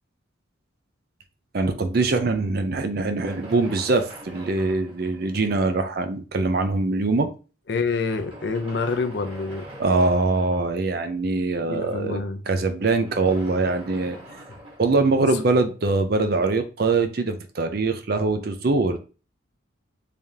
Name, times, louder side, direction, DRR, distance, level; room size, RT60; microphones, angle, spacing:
voice 1, 1.5-7.3 9.8-14.2 14.8-19.0, right 3 dB, 50° right, 0.5 m, -23 dB
sound 1, 3.2-5.9 6.7-6.8 7.9-10.9 12.8-15.9, equal, 25° right, 1.3 m, -43 dB
voice 2, 7.7-9.6 11.6-12.4 15.3-15.4, left 4 dB, 55° left, 0.5 m, -27 dB
3.5 x 3.4 x 2.7 m
head